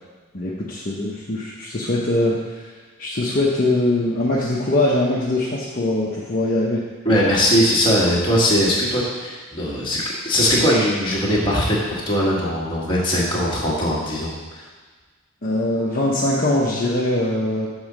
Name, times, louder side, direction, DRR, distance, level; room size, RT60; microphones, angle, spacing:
voice 1, 0.3-2.7 3.0-6.8 15.4-17.7, left 1 dB, 40° left, -6 dB, 0.9 m, -22 dB
voice 2, 7.0-14.7, equal, 25° left, -6 dB, 1.7 m, -20 dB
7.1 x 4.0 x 6.1 m, 1.4 s
head